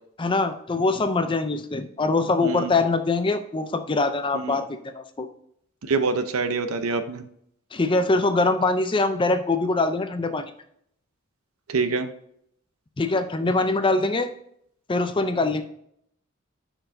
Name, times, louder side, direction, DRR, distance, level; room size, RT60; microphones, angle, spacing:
voice 1, 0.2-5.3 7.7-10.4 13.0-14.3 14.9-15.6, left 3 dB, 20° left, 9 dB, 0.4 m, -23 dB
voice 2, 5.9-7.2 11.7-12.1, right 4 dB, 75° right, 9 dB, 0.7 m, -25 dB
6.6 x 5.9 x 2.6 m, 0.70 s
head